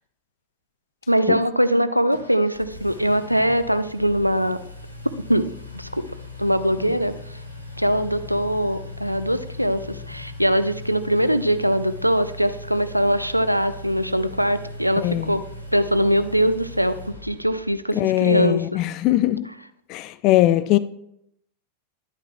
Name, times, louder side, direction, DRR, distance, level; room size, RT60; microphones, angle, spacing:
voice 1, 1.1-4.6 5.3-5.5 5.7-6.1 6.4-7.4 7.8-15.4 15.7-18.6, equal, 90° right, 0.4 m, -22 dB
Engine, 2.1-17.8, left 2 dB, 90° left, 1.1 m, -39 dB
voice 2, 15.0-15.4 17.9-19.5 19.9-20.8, left 15 dB, 40° left, 0.4 m, -20 dB
11.0 x 9.0 x 2.3 m
figure-of-eight pair, 90°, 0 cm